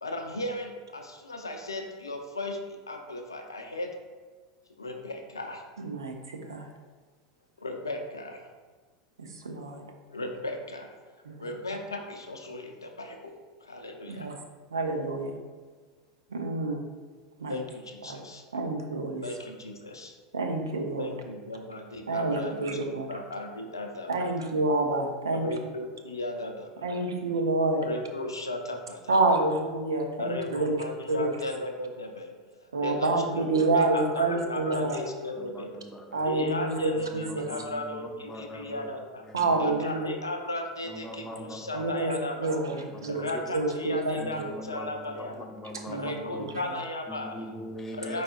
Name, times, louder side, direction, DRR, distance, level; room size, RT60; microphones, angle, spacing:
voice 1, 0.0-3.9 4.8-5.6 7.6-8.4 10.1-11.0 11.4-13.3 13.7-14.3 17.5-18.4 19.2-20.2 21.0-24.3 25.3-26.9 27.8-29.4 30.2-32.3 32.8-33.1 33.4-35.8 36.2-39.2 39.6-42.6 43.1-45.5 45.9-47.5 47.9-48.2, left 2 dB, 85° left, 4 dB, 0.5 m, -36 dB
voice 2, 5.8-6.7 9.2-9.8 11.3-11.4 14.1-14.4 14.7-15.3 16.3-16.8 17.4-17.6 18.0-18.2 18.5-19.2 20.3-21.1 22.1-23.1 24.1-25.5 26.8-27.8 29.1-30.7 31.1-31.3 32.7-35.0 36.1-37.5 39.3-40.1 41.7-43.2 43.5-44.5 45.9-46.1, right 2 dB, 75° right, 3 dB, 0.6 m, -28 dB
voice 3, 35.4-36.2 37.1-38.9 39.2-39.8 40.9-41.9 42.9-43.3 44.2-46.5 47.1-48.2, left 1 dB, 15° left, 2 dB, 0.7 m, -42 dB
4.7 x 4.1 x 2.4 m, 1.4 s
figure-of-eight pair, 80°, 2 cm